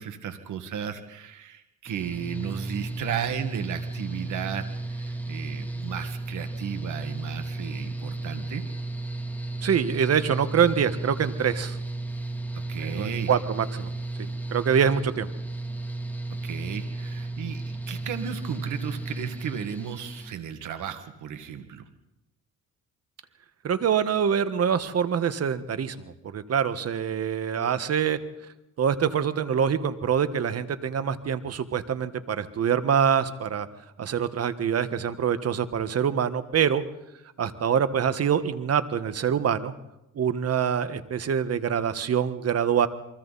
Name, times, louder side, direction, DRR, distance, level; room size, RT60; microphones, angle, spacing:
voice 1, 0.0-8.7 12.7-13.3 16.4-21.8, right 8 dB, 80° right, 8 dB, 2.0 m, -34 dB
Mechanical fan, 1.9-20.3, right 2 dB, 5° left, 2.3 m, -34 dB
voice 2, 9.6-11.8 12.8-13.9 14.2-15.3 23.6-26.0 26.2-28.2 28.8-33.7 34.0-36.8 37.4-39.7 40.1-42.9, right 7 dB, 55° right, 12 dB, 1.5 m, -25 dB
28.5 x 23.5 x 4.2 m, 0.92 s
cardioid pair, 90°, 30 cm